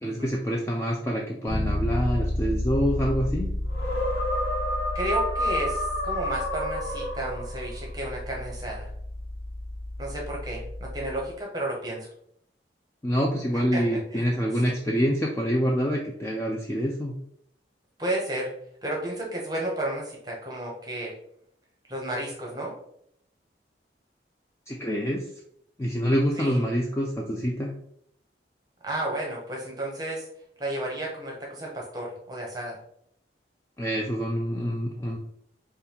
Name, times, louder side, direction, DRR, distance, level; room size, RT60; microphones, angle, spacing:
voice 1, 0.0-3.5 13.0-17.2 24.7-25.2 25.8-27.7 33.8-35.2, equal, 15° left, -1 dB, 0.3 m, -26 dB
Bass guitar, 1.5-11.3, left 1 dB, 40° left, 0.9 m, -32 dB
sound 1, 3.7-7.8, left 1 dB, 65° left, 1.2 m, -29 dB
voice 2, 4.9-8.9 10.0-12.1 13.7-14.3 14.5-14.6 18.0-18.5 18.8-21.1 21.9-22.7 26.4-26.7 28.8-30.3 30.6-32.8, right 1 dB, 20° right, -2 dB, 0.7 m, -32 dB
5.2 x 2.3 x 2.8 m, 0.70 s
head